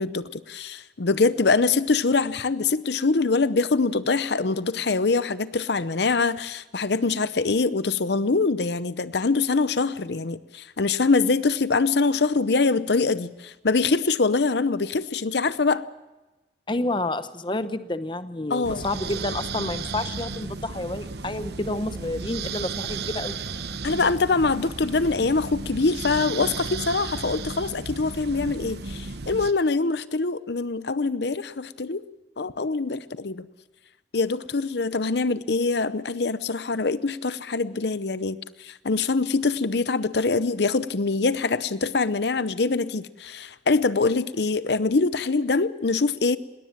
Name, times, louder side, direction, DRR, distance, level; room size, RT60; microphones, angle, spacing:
voice 1, 0.0-15.8 18.5-18.8 23.8-32.0 32.4-33.5 34.1-46.4, left 4 dB, 70° left, 0.8 m, -24 dB
voice 2, 16.7-23.4, left 2 dB, 25° left, 0.8 m, -29 dB
sound 1, 18.6-29.5, right 4 dB, 65° right, 1.0 m, -34 dB
20.5 x 18.5 x 7.3 m
head